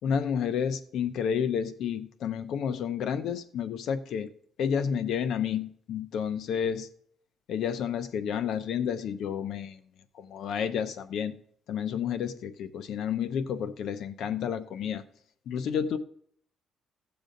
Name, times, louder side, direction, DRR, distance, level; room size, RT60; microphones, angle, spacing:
voice 1, 0.0-4.3 4.6-6.9 7.5-9.8 10.2-11.3 11.7-15.0 15.5-16.0, left 7 dB, 65° left, 0.8 m, -30 dB
16.5 x 7.0 x 3.9 m
cardioid pair, 160°, 0 cm